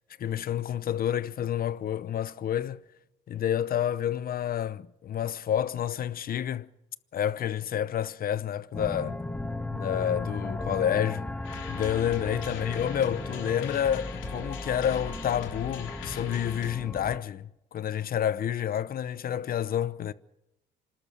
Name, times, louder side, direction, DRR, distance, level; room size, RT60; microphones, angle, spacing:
voice 1, 0.2-2.8 3.3-6.7 7.1-9.2 9.7-11.2 11.7-20.1, left 10 dB, 50° left, 0.8 m, -29 dB
sound 1, 8.7-17.2, left 2 dB, 5° left, 1.8 m, -36 dB
sound 2, 11.4-16.7, left 8 dB, 75° left, 3.2 m, -42 dB
26.5 x 13.0 x 8.6 m
cardioid pair, 105°, 20 cm